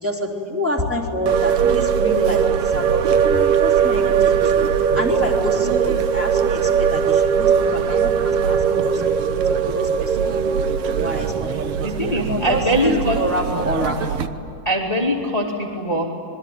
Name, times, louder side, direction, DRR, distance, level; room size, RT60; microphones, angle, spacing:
voice 1, 0.0-4.2 4.9-9.3 9.7-10.5 10.9-11.5 12.0-14.0, equal, 5° right, 0 dB, 2.9 m, -27 dB
sound 1, 1.3-14.3, right 7 dB, 85° right, 1.2 m, -20 dB
voice 2, 11.5-13.2 14.6-16.1, equal, 10° left, 0 dB, 2.2 m, -22 dB
26.5 x 23.0 x 9.6 m, 2.6 s
omnidirectional pair, 4.1 m